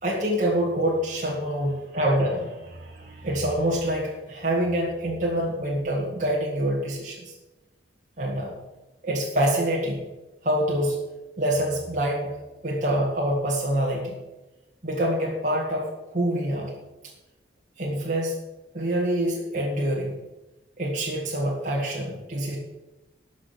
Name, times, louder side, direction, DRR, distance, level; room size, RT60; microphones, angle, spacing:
voice 1, 0.0-7.2 8.2-8.5 9.0-10.0 10.4-11.0 11.4-12.3 12.6-14.1 14.8-16.7 17.8-18.3 18.7-20.2 20.8-22.6, right 1 dB, 45° right, -4 dB, 2.0 m, -26 dB
12.5 x 6.3 x 6.5 m, 1.1 s
head